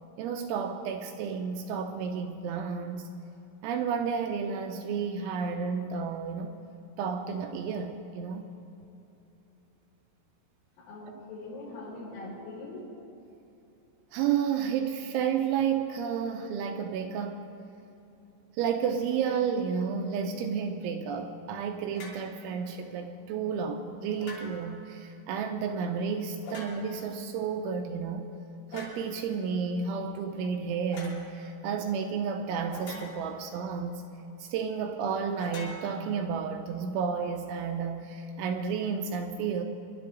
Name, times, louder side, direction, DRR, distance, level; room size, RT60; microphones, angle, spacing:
voice 1, 0.2-3.1 3.6-6.5 7.0-8.4 14.1-17.5 18.6-28.3 28.7-34.0 34.4-39.6, right 6 dB, 80° right, 4 dB, 2.9 m, -31 dB
voice 2, 10.8-12.8, left 2 dB, 85° left, -4 dB, 6.6 m, -42 dB
sound 1, 21.9-22.3 24.2-24.8 26.4-27.1 28.7-29.1 30.9-31.2 32.7-33.4 35.4-36.5, left 2 dB, 55° left, 4.1 m, -44 dB
26.0 x 11.5 x 3.8 m, 2.9 s
omnidirectional pair, 5.9 m